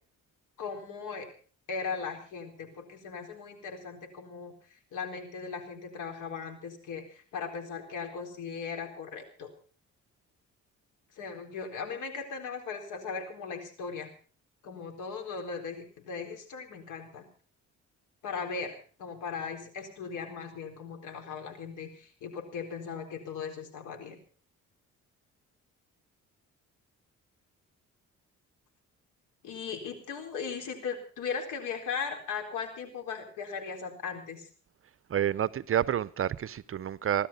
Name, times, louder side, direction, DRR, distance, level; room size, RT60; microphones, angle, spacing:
voice 1, 0.6-1.3 1.7-9.5 11.2-14.1 14.6-17.2 18.2-24.2 29.4-34.5, left 5 dB, 85° left, 4.2 m, -38 dB
voice 2, 35.1-37.3, right 10 dB, 45° right, 0.7 m, -29 dB
18.0 x 12.0 x 5.7 m
cardioid pair, 90°, 30 cm